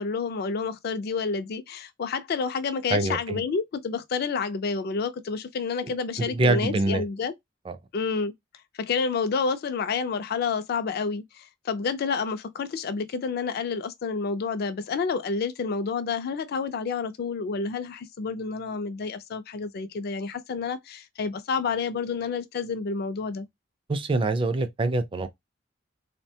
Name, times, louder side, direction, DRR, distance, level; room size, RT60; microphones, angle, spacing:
voice 1, 0.0-7.3 7.9-8.3 8.8-23.5, left 5 dB, 55° left, 0.4 m, -29 dB
voice 2, 2.9-3.4 5.8-5.9 6.2-7.1 7.7-7.8 23.9-25.3, right 2 dB, 25° right, 0.4 m, -25 dB
3.3 x 2.1 x 2.6 m
head